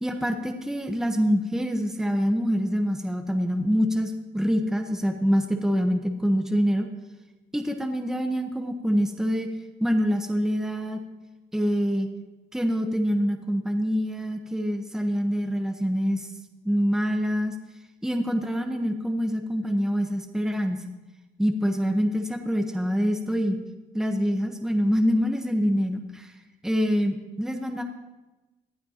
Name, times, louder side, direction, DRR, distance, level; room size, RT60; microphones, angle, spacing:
voice 1, 0.0-6.9 7.5-9.5 9.8-11.0 11.5-12.1 12.5-16.3 16.6-17.5 18.0-20.8 21.4-23.6 23.9-26.3 26.6-27.8, equal, ahead, 4 dB, 1.1 m, -25 dB
18.5 x 11.0 x 2.9 m, 1.1 s
cardioid pair, 90°, 20 cm